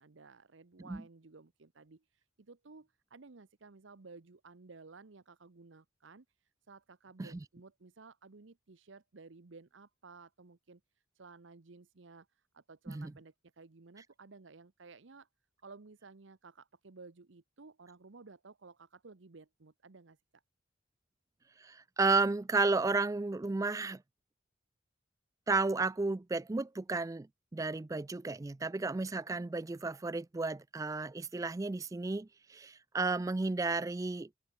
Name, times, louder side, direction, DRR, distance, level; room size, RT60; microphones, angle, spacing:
voice 1, 0.0-2.0 2.4-6.2 6.7-10.8 11.2-12.3 12.5-15.3 15.6-20.4, right 4 dB, 70° right, 0.9 m, -55 dB
voice 2, 21.6-24.0 25.5-27.3 27.5-34.3, right 3 dB, 15° right, 0.3 m, -33 dB
open air
head